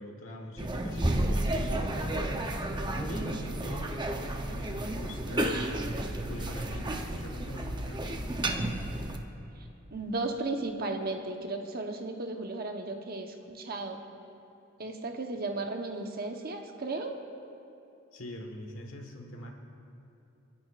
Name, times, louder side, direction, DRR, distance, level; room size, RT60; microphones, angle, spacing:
voice 1, 0.0-2.1 2.7-4.0 4.5-5.9 6.3-8.3 18.1-19.5, left 1 dB, 85° left, 1 dB, 1.5 m, -42 dB
sound 1, 0.6-9.2, right 1 dB, 20° right, 0.8 m, -32 dB
voice 2, 9.6-14.0 14.8-17.1, right 2 dB, 50° right, 3 dB, 1.1 m, -35 dB
30.0 x 10.5 x 2.5 m, 2.9 s
head